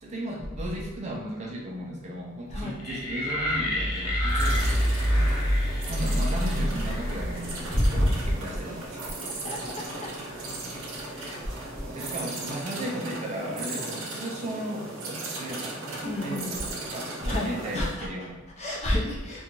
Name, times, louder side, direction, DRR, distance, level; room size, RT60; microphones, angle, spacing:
voice 1, 0.0-4.6 5.9-9.0 11.9-15.8 16.2-18.4, right 1 dB, 30° right, -2 dB, 0.3 m, -35 dB
sound 1, 2.8-8.1, left 1 dB, 90° left, 0.7 m, -33 dB
sound 2, 3.4-7.6, equal, 45° left, 1.0 m, -26 dB
sound 3, 4.3-17.9, right 2 dB, 80° right, 0.6 m, -37 dB
voice 2, 7.7-8.3 9.4-9.6 11.1-11.5 16.0-16.5 17.2-18.1 18.6-19.4, left 1 dB, 30° left, -4 dB, 0.5 m, -28 dB
2.5 x 2.2 x 2.9 m, 1.3 s
head